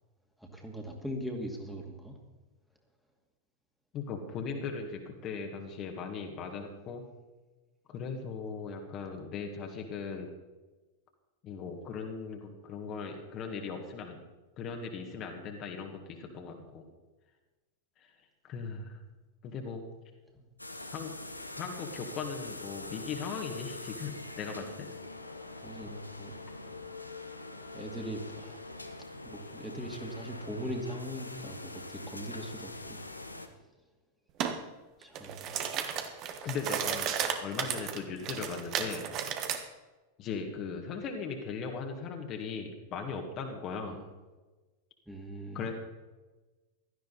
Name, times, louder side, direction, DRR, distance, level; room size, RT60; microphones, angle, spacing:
voice 1, 0.4-2.2 22.0-22.1 25.6-26.4 27.7-28.7 29.2-33.0 35.0-35.4 38.2-38.3 43.9-44.0 45.1-45.6, equal, ahead, 1 dB, 2.4 m, -40 dB
voice 2, 3.9-7.0 7.9-10.3 11.4-14.2 14.6-16.9 18.0-18.1 18.5-19.0 19.4-19.8 20.9-21.1 21.5-24.9 36.4-37.1 37.4-39.0 40.2-44.0 45.5-45.7, left 5 dB, 35° left, 3 dB, 1.9 m, -38 dB
sound 1, 20.6-33.5, left 2 dB, 85° left, 1.1 m, -44 dB
sound 2, 34.4-34.6 35.0-39.6, right 8 dB, 35° right, 1.4 m, -33 dB
16.5 x 13.0 x 4.2 m, 1.2 s
figure-of-eight pair, 90°, 0 cm